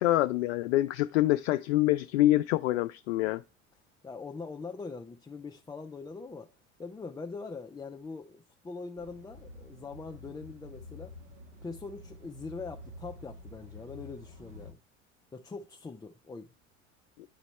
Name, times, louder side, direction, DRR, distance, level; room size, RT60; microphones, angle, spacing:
voice 1, 0.0-3.4, left 16 dB, 60° left, 0.5 m, -26 dB
voice 2, 4.0-6.5 6.8-11.1 11.6-14.8 15.3-16.5, left 4 dB, 10° left, 0.5 m, -42 dB
sound 1, 9.0-14.7, left 1 dB, 70° right, 1.6 m, -49 dB
10.0 x 4.1 x 3.1 m
figure-of-eight pair, 70°, 40 cm